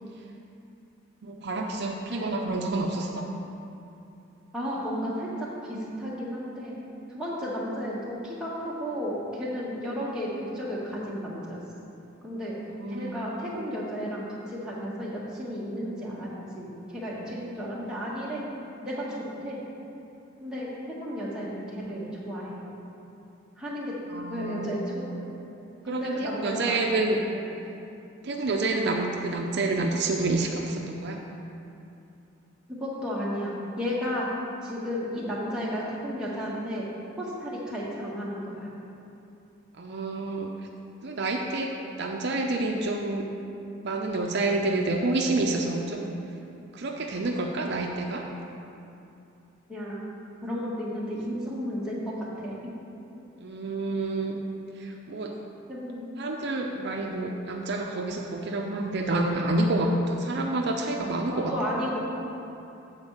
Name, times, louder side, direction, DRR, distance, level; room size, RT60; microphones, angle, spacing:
voice 1, 1.2-3.3 12.8-13.2 24.1-24.7 25.9-27.2 28.2-31.2 39.8-40.5 41.0-41.7 42.0-43.3 43.8-46.1 46.7-48.2 53.4-54.4 54.8-55.3 56.2-61.7, right 2 dB, 55° right, 1 dB, 0.5 m, -28 dB
voice 2, 4.5-6.8 7.1-11.6 12.2-12.6 12.9-18.4 18.8-19.6 20.4-22.6 23.6-24.0 24.3-25.3 25.8-26.8 27.3-27.7 32.8-34.3 34.6-36.9 37.2-38.7 44.5-44.6 49.7-50.0 50.4-52.7 55.1-55.2 55.7-56.2 61.3-62.0, equal, 5° right, -7 dB, 1.5 m, -33 dB
8.0 x 4.4 x 7.2 m, 2.7 s
head